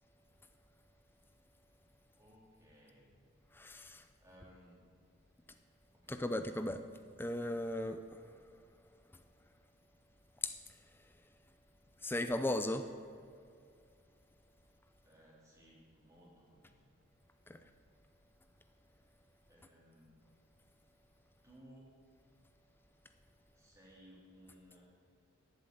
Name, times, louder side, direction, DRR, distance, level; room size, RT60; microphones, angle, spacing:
voice 1, 2.1-3.1 4.2-4.9 5.9-6.4 15.0-16.8 19.5-20.2 21.4-22.1 23.5-24.8, equal, 15° right, -5 dB, 3.1 m, -61 dB
voice 2, 3.5-4.0 6.1-6.8 7.2-8.5 10.4-10.5 12.0-12.9 17.5-17.6, left 1 dB, 10° left, 8 dB, 0.4 m, -37 dB
11.0 x 7.8 x 9.1 m, 2.3 s
head